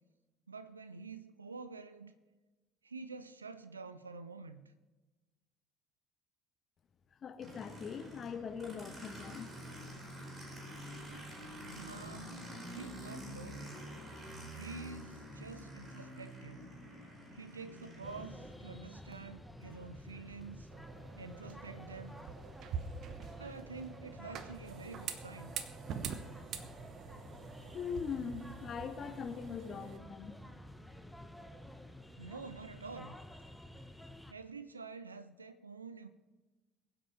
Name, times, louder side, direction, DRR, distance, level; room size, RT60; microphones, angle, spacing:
voice 1, 0.5-2.2 2.8-4.7 11.8-13.8 14.5-16.7 17.3-20.7 21.2-22.2 23.4-25.6 32.2-33.2 34.3-36.1, right 4 dB, 80° right, 12 dB, 0.5 m, -48 dB
voice 2, 7.2-9.5 27.7-30.6, left 6 dB, 40° left, 10 dB, 0.9 m, -41 dB
Aircraft, 7.4-18.5, equal, 30° right, 4.5 m, -48 dB
sound 1, 18.0-34.3, left 1 dB, 5° left, 1.1 m, -51 dB
sound 2, 20.7-30.0, right 7 dB, 50° right, 1.0 m, -45 dB
22.0 x 8.0 x 4.4 m, 1.2 s
figure-of-eight pair, 60°, 0 cm